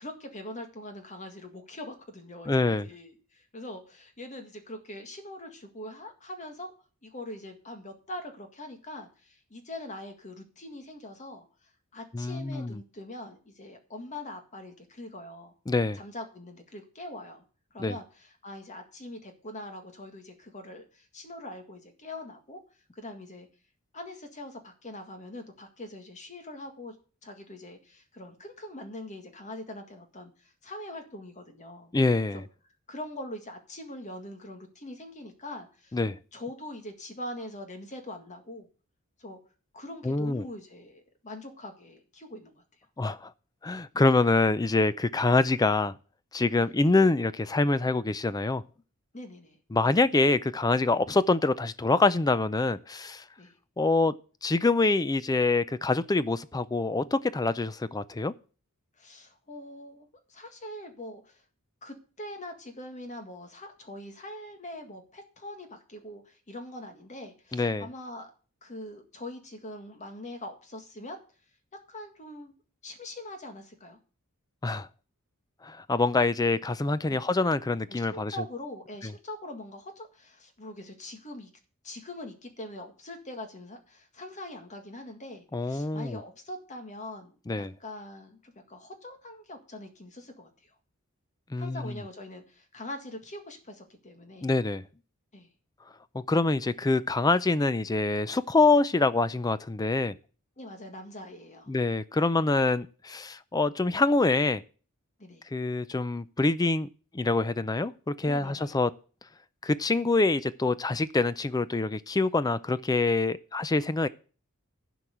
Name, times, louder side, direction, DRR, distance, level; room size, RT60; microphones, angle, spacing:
voice 1, 0.0-6.7 7.0-15.5 15.9-17.4 17.7-22.6 23.0-23.5 23.9-26.9 27.2-31.9 32.3-32.5 32.9-36.0 36.3-38.7 39.2-39.4 39.7-42.6 46.6-46.7 49.1-49.6 53.4-53.5 59.0-61.4 61.8-68.3 68.6-71.2 71.9-72.5 72.8-74.0 77.1-77.3 77.9-81.5 81.8-90.7 91.6-94.5 95.3-95.5 100.6-101.7 105.2-105.5 108.2-108.8, left 1 dB, 35° left, 1.8 m, -43 dB
voice 2, 2.5-2.9 12.1-12.8 15.7-16.0 17.8-17.9 31.9-32.4 35.9-36.2 40.0-40.4 43.0-43.3 43.6-45.9 46.3-48.6 49.7-53.2 53.8-54.1 54.4-58.3 67.5-67.9 74.6-74.9 75.6-78.3 85.5-86.2 87.5-87.7 91.5-92.0 94.4-94.8 96.1-100.1 101.7-104.6 105.5-106.9 107.1-108.9 109.6-114.1, left 3 dB, 15° left, 0.4 m, -25 dB
12.0 x 4.7 x 7.9 m
head